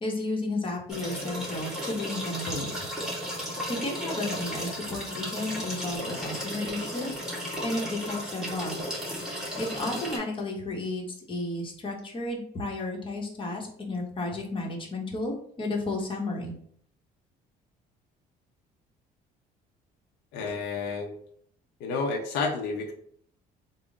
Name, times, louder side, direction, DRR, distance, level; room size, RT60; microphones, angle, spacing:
voice 1, 0.0-2.9 3.5-7.1 7.6-16.5, left 2 dB, 30° left, 0 dB, 0.9 m, -33 dB
sound 1, 0.9-10.2, equal, 5° right, 1.2 m, -34 dB
voice 2, 20.3-21.2 21.8-22.9, left 4 dB, 90° left, 2 dB, 0.6 m, -30 dB
3.6 x 2.0 x 3.7 m, 0.62 s
cardioid pair, 110°, 17 cm